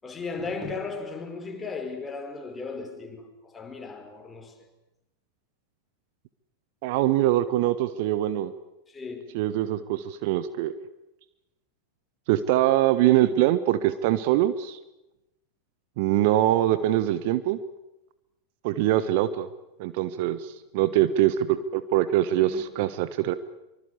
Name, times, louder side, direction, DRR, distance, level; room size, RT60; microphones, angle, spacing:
voice 1, 0.0-4.5 8.9-9.4 22.3-22.7, left 4 dB, 15° left, 5.4 m, -36 dB
voice 2, 6.8-8.5 9.3-10.7 12.3-14.8 16.0-17.6 18.6-19.5 19.8-23.4, right 13 dB, 50° right, 1.2 m, -23 dB
25.5 x 24.5 x 8.2 m
figure-of-eight pair, 90°, 0 cm